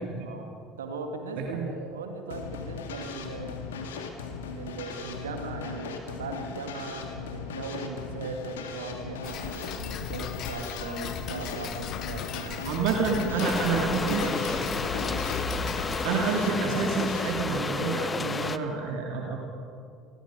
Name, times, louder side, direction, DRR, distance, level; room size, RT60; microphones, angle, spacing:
voice 1, 0.2-3.6 4.5-12.7 13.4-15.3, right 4 dB, 75° right, 5 dB, 2.4 m, -39 dB
voice 2, 1.4-1.7 12.6-14.2 16.0-19.4, right 5 dB, 60° right, 0 dB, 2.7 m, -28 dB
sound 1, 2.3-17.4, left 5 dB, 75° left, 2.4 m, -38 dB
Tick-tock, 9.2-16.1, left 6 dB, 50° left, 1.8 m, -37 dB
sound 2, 13.4-18.6, left 4 dB, 25° left, 1.1 m, -31 dB
28.5 x 22.0 x 5.2 m, 2.4 s
figure-of-eight pair, 60°, 0 cm